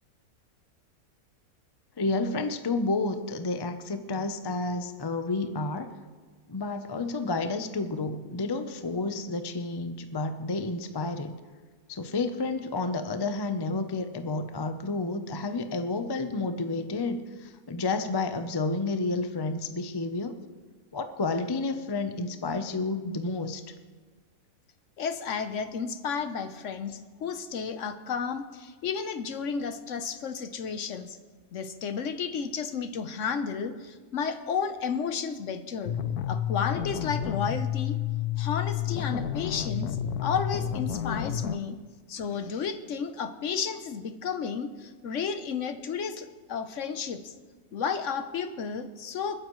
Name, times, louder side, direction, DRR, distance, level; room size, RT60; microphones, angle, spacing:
voice 1, 2.0-5.9 6.5-11.4 11.9-20.4 20.9-23.6, left 3 dB, 30° left, 8 dB, 0.4 m, -30 dB
voice 2, 25.0-31.2 31.5-35.9 36.3-38.0 38.4-41.8 42.1-47.3 47.7-49.4, left 6 dB, 60° left, 9 dB, 1.0 m, -32 dB
sound 1, 35.8-41.6, left 9 dB, 85° left, 1.1 m, -30 dB
28.5 x 9.7 x 3.1 m, 1.4 s
omnidirectional pair, 1.6 m